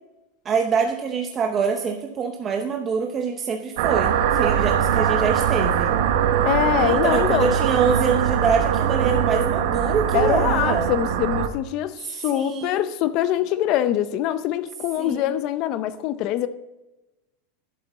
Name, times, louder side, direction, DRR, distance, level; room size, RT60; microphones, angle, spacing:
voice 1, 0.4-6.0 6.8-10.9 12.0-12.8 15.0-15.3, right 5 dB, 20° right, 0.6 m, -25 dB
sound 1, 3.8-11.5, right 8 dB, 60° right, 0.8 m, -21 dB
voice 2, 6.4-7.5 10.1-16.5, left 12 dB, 35° left, 0.6 m, -24 dB
11.5 x 7.7 x 4.1 m
supercardioid pair, 165°, 0 cm